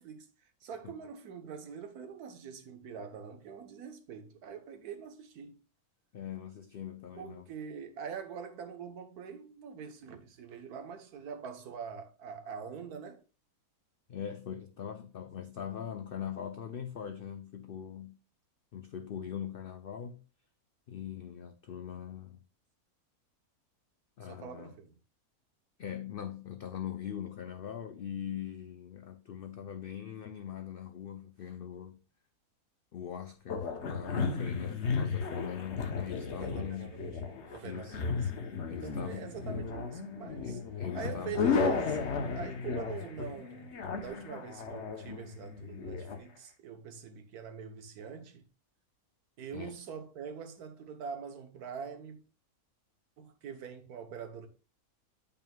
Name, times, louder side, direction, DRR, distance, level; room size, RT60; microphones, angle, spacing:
voice 1, 0.0-5.6 7.2-13.2 24.2-24.9 36.2-38.3 38.7-40.6 40.9-42.0 42.3-48.4 49.4-52.2 53.2-54.5, right 6 dB, 85° right, 1.4 m, -44 dB
voice 2, 6.1-7.4 14.1-18.2 18.7-20.2 20.9-22.4 24.2-24.7 25.8-32.0 32.9-36.9 37.6-38.0 38.7-39.3 40.4-41.4 49.5-49.7, left 9 dB, 85° left, 0.5 m, -41 dB
sound 1, 33.5-46.2, left 5 dB, 55° left, 1.1 m, -34 dB
8.9 x 5.4 x 2.2 m
omnidirectional pair, 1.6 m